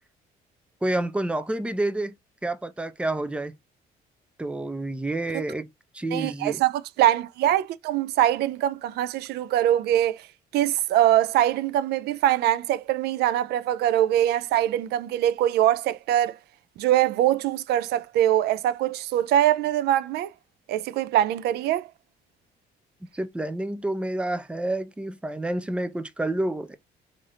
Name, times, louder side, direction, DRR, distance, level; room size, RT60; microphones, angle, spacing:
voice 1, 0.8-2.1 2.4-3.6 4.4-5.7 5.9-6.6 23.1-26.8, right 1 dB, 5° right, 0.5 m, -29 dB
voice 2, 6.1-10.3 10.5-16.4 16.8-20.3 20.7-21.9, right 12 dB, 75° right, 0.4 m, -23 dB
3.3 x 2.7 x 3.8 m
cardioid pair, 110°, 17 cm